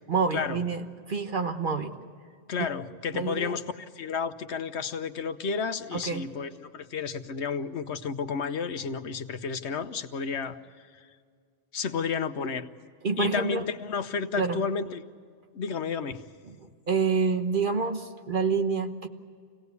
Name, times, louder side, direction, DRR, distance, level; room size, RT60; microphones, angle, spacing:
voice 1, 0.1-1.9 2.6-2.7 3.1-3.5 5.9-6.2 13.0-13.6 14.4-14.6 16.5-16.6 16.9-19.1, right 5 dB, 50° right, 6 dB, 1.3 m, -27 dB
voice 2, 2.5-10.6 11.7-12.7 13.2-15.0 15.5-16.2, left 5 dB, 75° left, 10 dB, 1.2 m, -31 dB
26.0 x 17.5 x 8.2 m, 2.1 s
omnidirectional pair, 1.1 m